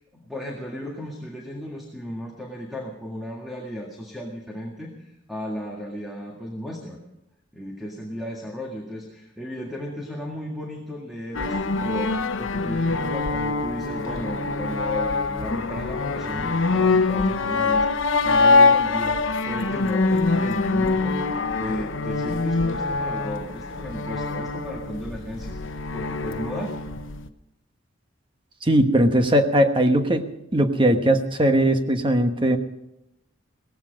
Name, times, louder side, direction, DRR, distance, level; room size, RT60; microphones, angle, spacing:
voice 1, 0.0-7.0 7.5-21.2 21.6-26.8, equal, ahead, -1 dB, 1.9 m, -35 dB
sound 1, 11.3-27.3, left 3 dB, 75° left, 0.8 m, -24 dB
voice 2, 28.6-32.6, right 1 dB, 25° right, 6 dB, 1.2 m, -19 dB
17.5 x 15.5 x 5.2 m, 0.85 s
head